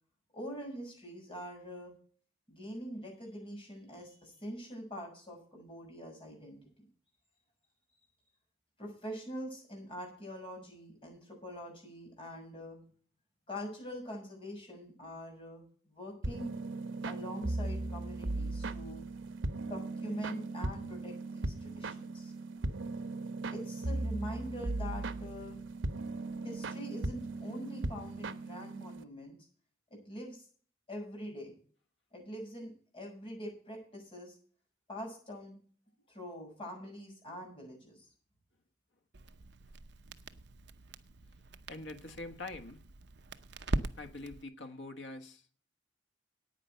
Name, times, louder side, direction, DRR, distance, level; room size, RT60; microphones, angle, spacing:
voice 1, 0.3-1.9 2.5-6.6 8.8-12.8 13.5-16.5 17.0-19.1 19.6-22.3 23.5-25.6 26.4-29.4 29.9-30.4 30.9-31.6 32.1-34.4 34.9-35.6 36.1-38.0, equal, 30° left, 6.7 m, -44 dB
sound 1, 16.2-29.0, right 2 dB, 85° right, 1.0 m, -38 dB
Crackle, 39.1-44.4, right 2 dB, 60° right, 0.8 m, -41 dB
voice 2, 41.7-42.8 44.0-45.5, left 2 dB, 70° left, 1.5 m, -44 dB
9.7 x 9.1 x 6.8 m
head